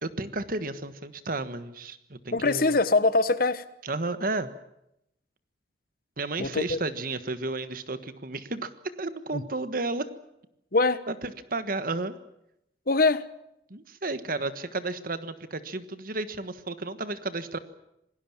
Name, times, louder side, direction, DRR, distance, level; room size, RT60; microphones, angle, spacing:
voice 1, 0.0-2.8 3.8-4.5 6.2-8.7 9.0-10.0 11.1-12.1 13.7-17.6, right 2 dB, 50° right, 11 dB, 1.4 m, -32 dB
voice 2, 2.3-3.6 6.4-6.8 9.3-9.4 10.7-11.0 12.9-13.3, left 3 dB, 55° left, 14 dB, 1.2 m, -23 dB
27.0 x 19.0 x 7.3 m, 0.81 s
head